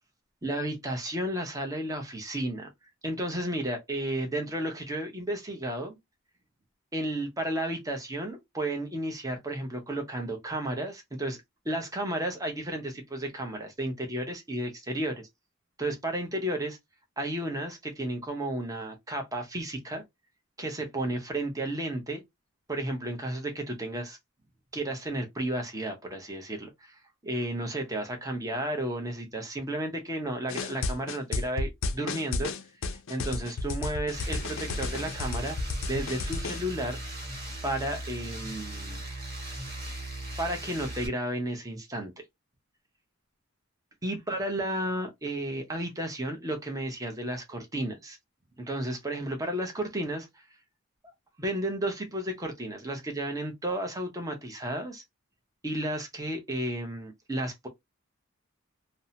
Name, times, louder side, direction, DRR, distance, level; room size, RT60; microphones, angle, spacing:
voice 1, 0.4-2.7 3.0-6.0 6.9-15.3 15.8-16.8 17.2-20.0 20.6-22.2 22.7-24.2 24.7-32.5 33.1-35.6 35.8-37.0 37.6-39.0 40.4-42.1 44.0-48.2 48.6-50.4 51.4-55.0 55.6-57.7, right 1 dB, 15° right, 0.7 m, -33 dB
sound 1, 30.5-36.6, left 3 dB, 60° left, 0.5 m, -32 dB
sound 2, 34.1-41.1, right 1 dB, 50° right, 1.3 m, -38 dB
2.7 x 2.1 x 2.7 m
head